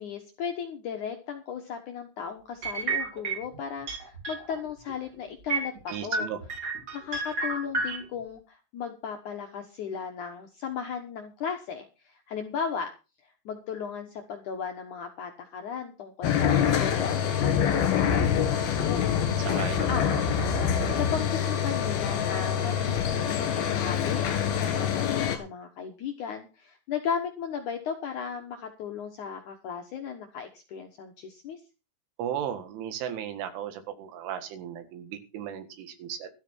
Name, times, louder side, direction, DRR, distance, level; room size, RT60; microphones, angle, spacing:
voice 1, 0.0-6.3 6.9-12.9 13.2-19.1 19.9-20.3 20.9-31.6, left 7 dB, 75° left, 4 dB, 1.8 m, -36 dB
sound 1, 2.6-3.6 3.9-4.6 4.9-5.0 5.5-8.0, right 3 dB, 35° right, 1.7 m, -30 dB
voice 2, 5.9-6.4 19.3-19.9 32.2-36.3, right 9 dB, 85° right, 9 dB, 4.2 m, -35 dB
sound 2, 16.2-25.4, left 8 dB, 60° left, 3.6 m, -25 dB
13.0 x 12.5 x 4.5 m, 0.31 s
omnidirectional pair, 5.4 m